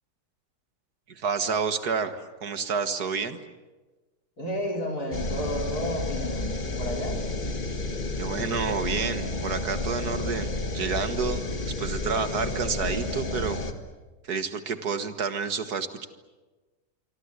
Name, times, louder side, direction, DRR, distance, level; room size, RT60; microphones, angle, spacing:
voice 1, 1.1-3.4 8.2-13.6 14.3-16.1, right 5 dB, 75° right, 9 dB, 2.1 m, -29 dB
voice 2, 4.4-7.2, equal, 70° left, 1 dB, 5.2 m, -32 dB
sound 1, 5.1-13.7, left 2 dB, 30° left, 1.9 m, -31 dB
27.5 x 24.0 x 8.2 m, 1.2 s
omnidirectional pair, 1.7 m